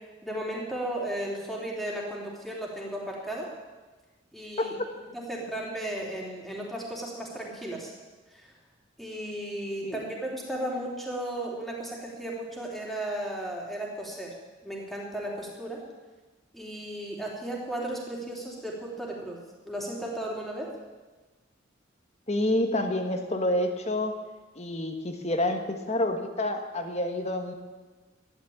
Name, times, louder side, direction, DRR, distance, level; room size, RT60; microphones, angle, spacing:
voice 1, 0.2-3.5 4.3-4.7 5.1-7.9 8.3-8.5 9.0-14.3 14.6-15.8 16.5-19.4 19.6-20.7, right 1 dB, ahead, -3 dB, 3.4 m, -35 dB
voice 2, 22.3-24.2 24.5-27.5, left 1 dB, 35° left, 5 dB, 1.6 m, -28 dB
13.0 x 11.0 x 8.8 m, 1.3 s
head